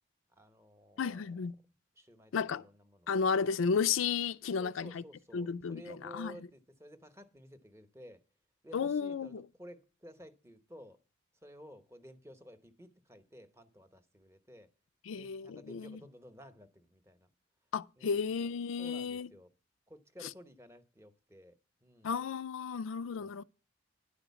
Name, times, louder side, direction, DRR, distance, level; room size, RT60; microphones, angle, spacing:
voice 1, 0.3-1.3 2.0-3.1 4.6-8.2 8.6-11.0 11.4-14.7 15.1-17.3 18.0-18.2 18.8-19.5 19.9-21.5 21.8-22.2 23.1-23.4, equal, 15° right, 0.9 m, -54 dB
voice 2, 1.0-1.6 2.3-2.6 3.1-5.0 5.3-5.8 6.1-6.3 8.7-9.4 15.1-16.0 17.7-19.3 22.0-23.4, left 5 dB, 80° left, 0.4 m, -33 dB
10.5 x 4.9 x 8.3 m
head